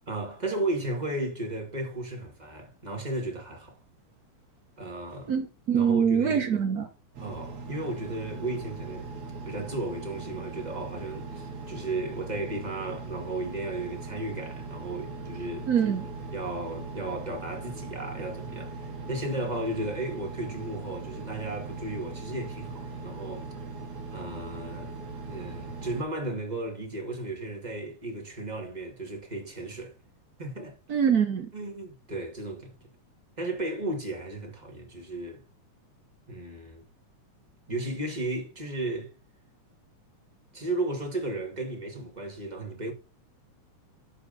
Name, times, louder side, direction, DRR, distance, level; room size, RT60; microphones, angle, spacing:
voice 1, 0.1-3.8 4.8-5.3 5.7-6.4 7.2-9.1 9.5-15.7 16.3-23.5 24.1-25.0 25.2-29.9 30.4-30.8 31.5-32.7 33.4-35.4 36.3-36.8 37.7-39.1 40.5-42.9, right 2 dB, 15° right, 2.0 m, -34 dB
voice 2, 5.3-6.9 15.7-16.1 30.9-31.5, right 7 dB, 85° right, 0.8 m, -24 dB
Engine, 7.1-26.0, right 3 dB, 65° right, 2.9 m, -39 dB
12.0 x 4.1 x 5.2 m
omnidirectional pair, 3.4 m